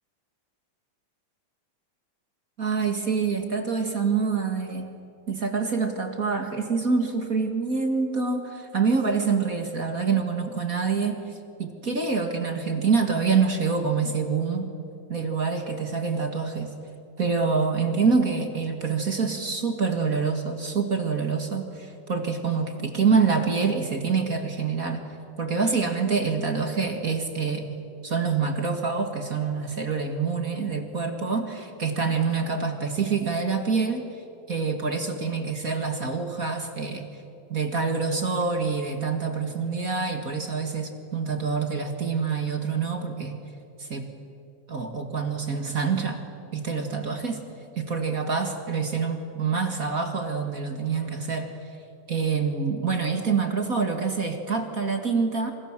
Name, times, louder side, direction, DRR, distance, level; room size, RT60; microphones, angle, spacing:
voice 1, 2.6-5.0 5.3-14.7 15.1-16.7 17.2-25.0 25.4-27.7 28.0-34.1 34.5-37.1 37.5-43.4 43.8-44.1 44.7-46.2 46.5-47.4 47.7-51.5 52.1-55.5, right 5 dB, 30° right, 5 dB, 1.8 m, -26 dB
28.0 x 27.0 x 7.5 m, 2.6 s
omnidirectional pair, 3.6 m